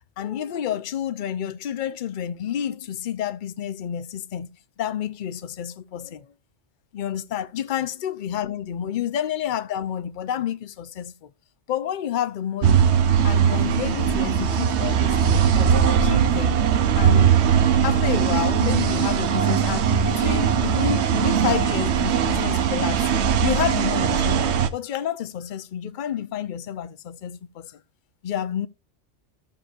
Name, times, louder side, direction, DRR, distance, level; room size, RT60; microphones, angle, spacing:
voice 1, 0.2-4.5 4.8-6.3 6.9-11.3 11.7-16.6 16.9-17.4 17.8-23.1 23.4-27.8 28.2-28.7, left 10 dB, 50° left, 0.7 m, -29 dB
sound 1, 12.6-24.7, right 8 dB, 70° right, 1.0 m, -20 dB
15.0 x 6.8 x 2.5 m
omnidirectional pair, 1.2 m